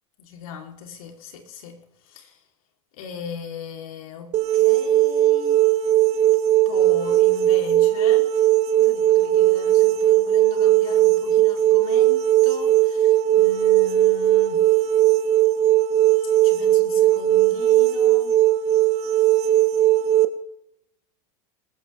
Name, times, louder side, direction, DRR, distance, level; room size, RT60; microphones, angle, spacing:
voice 1, 0.2-2.4 2.9-5.7 6.6-14.8 16.4-18.3, left 5 dB, 80° left, 3.3 m, -39 dB
sound 1, 4.3-20.3, right 13 dB, 40° right, 1.3 m, -18 dB
20.0 x 15.0 x 3.4 m
supercardioid pair, 125°, 18 cm